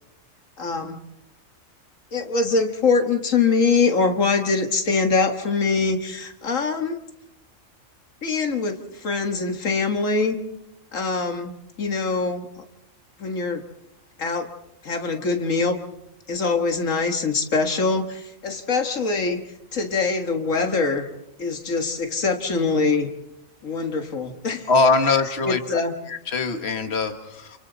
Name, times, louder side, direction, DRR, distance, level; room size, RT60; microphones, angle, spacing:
voice 1, 0.6-1.0 2.1-7.0 8.2-10.4 10.9-11.5 11.8-12.5 13.2-13.6 14.2-14.5 14.8-15.8 16.3-19.4 19.7-21.1 21.4-23.1 23.6-24.7 25.5-25.9, left 4 dB, 85° left, 5 dB, 2.0 m, -23 dB
voice 2, 24.7-25.8 26.1-27.6, left 3 dB, 55° left, 6 dB, 1.8 m, -22 dB
29.5 x 28.0 x 4.1 m, 0.82 s
omnidirectional pair, 1.3 m